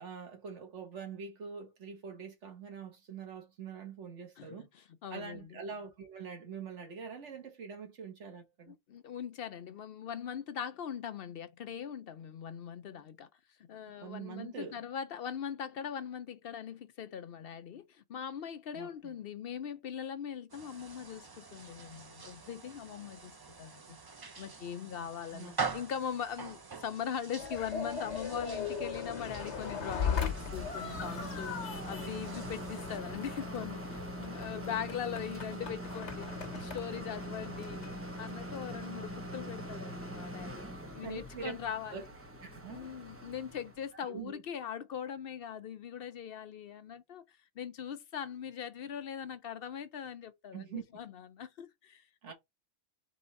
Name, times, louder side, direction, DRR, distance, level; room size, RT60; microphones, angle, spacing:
voice 1, 0.0-4.7 5.1-8.7 14.0-14.8 18.7-19.2 25.3-25.8 41.0-41.6 41.9-42.0 42.4-42.9 43.9-44.4 50.5-50.8 52.2-52.3, right 6 dB, 85° right, 1.6 m, -44 dB
voice 2, 4.4-5.6 8.7-13.3 13.6-24.0 24.4-37.9 38.2-40.6 40.9-42.1 42.7-52.3, left 8 dB, 60° left, 0.7 m, -41 dB
sound 1, 20.5-33.0, right 4 dB, 35° right, 0.3 m, -45 dB
sound 2, 27.4-38.7, left 6 dB, 80° left, 1.3 m, -39 dB
sound 3, 29.2-43.9, equal, 15° right, 0.8 m, -43 dB
3.8 x 3.4 x 4.0 m
omnidirectional pair, 1.2 m